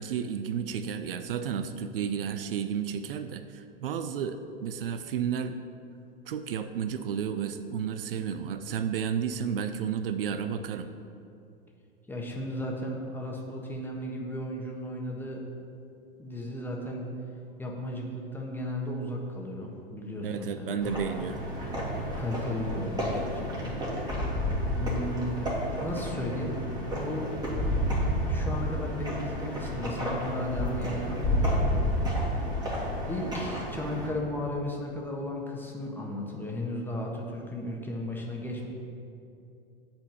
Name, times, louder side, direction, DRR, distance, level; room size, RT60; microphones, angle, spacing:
voice 1, 0.0-5.6 6.3-10.9 20.1-21.4, right 7 dB, 70° right, 10 dB, 0.5 m, -32 dB
voice 2, 12.1-15.4 16.2-17.1 17.6-20.9 22.2-23.8 24.7-26.6 26.9-27.3 28.3-32.0 33.1-38.7, left 1 dB, 5° left, -1 dB, 1.3 m, -35 dB
sound 1, 20.8-34.1, equal, 15° right, 2.1 m, -30 dB
7.8 x 4.4 x 7.0 m, 2.6 s
hypercardioid pair, 100°, 29 cm